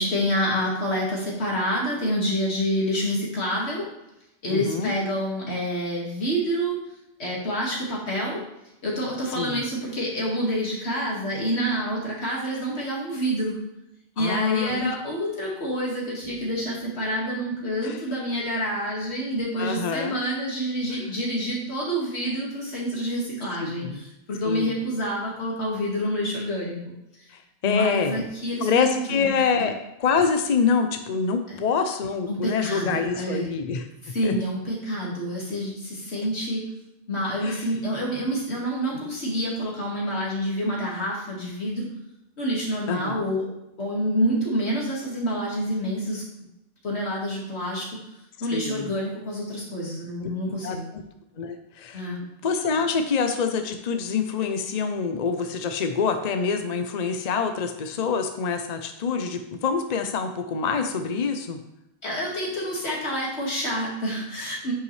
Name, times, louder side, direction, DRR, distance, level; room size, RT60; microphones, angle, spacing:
voice 1, 0.0-3.9 4.4-6.8 7.2-8.4 8.8-13.6 14.2-26.9 27.6-29.7 31.5-31.6 32.3-33.5 34.0-36.6 37.1-41.9 42.4-43.5 43.8-46.2 46.8-47.9 48.4-50.9 51.9-52.2 62.0-64.7, equal, 90° left, -4 dB, 2.4 m, -27 dB
voice 2, 4.5-4.9 9.3-9.6 14.2-14.9 17.8-18.0 19.6-20.1 23.6-24.0 24.4-24.7 27.6-28.3 28.6-29.7 30.0-33.9 34.2-34.3 37.4-37.6 42.9-43.2 48.5-48.9 50.2-50.3 50.6-50.8 51.4-52.2 52.4-61.6, left 5 dB, 45° left, 7 dB, 0.7 m, -26 dB
9.5 x 5.7 x 3.3 m, 0.88 s
omnidirectional pair, 1.1 m